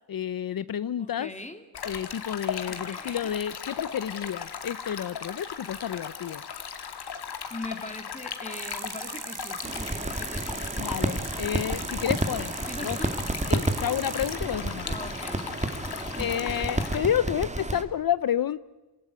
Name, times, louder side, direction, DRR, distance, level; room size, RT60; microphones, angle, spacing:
voice 1, 0.1-1.3 1.9-6.4 10.8-13.0 13.5-14.9 16.2-18.6, left 10 dB, 60° left, 16 dB, 0.7 m, -30 dB
voice 2, 1.0-1.7 2.7-3.3 7.5-11.3 12.7-13.2 14.9-15.5 16.2-16.5, left 2 dB, 20° left, 7 dB, 2.5 m, -41 dB
Stream, 1.7-17.0, left 7 dB, 75° left, 2.3 m, -37 dB
sound 1, 8.5-14.4, right 8 dB, 55° right, 1.1 m, -40 dB
sound 2, 9.6-17.8, right 2 dB, 15° right, 2.2 m, -31 dB
27.5 x 16.5 x 9.4 m, 1.1 s
cardioid pair, 65°, 39 cm